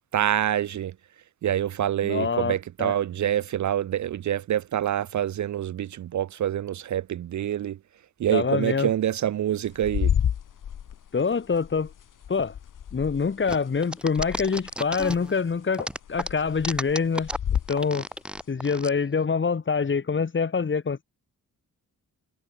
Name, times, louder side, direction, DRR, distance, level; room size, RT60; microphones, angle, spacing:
voice 1, 0.1-0.9 1.4-7.8 8.2-10.1, right 11 dB, 55° right, 0.6 m, -26 dB
voice 2, 2.0-2.9 8.3-8.9 11.1-11.9 12.3-12.5 12.9-17.3 17.7-18.1 18.5-21.0, left 5 dB, 35° left, 2.0 m, -25 dB
sound 1, 9.7-13.8 14.1-15.5 15.8-17.8 18.4-18.5, left 9 dB, 60° left, 2.0 m, -30 dB
sound 2, 13.5-15.4 15.7-18.9, equal, 5° right, 4.9 m, -33 dB
wide cardioid pair, 125°, 35 cm